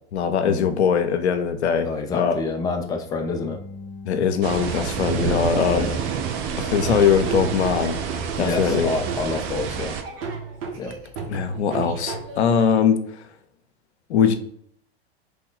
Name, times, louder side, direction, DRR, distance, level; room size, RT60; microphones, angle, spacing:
voice 1, 0.1-1.9 2.1-2.4 4.1-5.9 6.6-8.0 8.4-8.9 11.3-13.0 14.1-14.3, left 7 dB, 85° left, 0.5 m, -21 dB
voice 2, 1.8-3.6 5.1-6.0 8.4-10.0 10.8-11.0, left 3 dB, 10° left, 0.4 m, -28 dB
sound 1, 2.9-6.1, left 3 dB, 35° left, 0.9 m, -43 dB
sound 2, 4.4-10.0, right 7 dB, 40° right, 0.5 m, -28 dB
Laughter / Drum, 6.7-12.7, right 5 dB, 65° right, 0.8 m, -34 dB
3.0 x 2.2 x 3.7 m
hypercardioid pair, 100°, 32 cm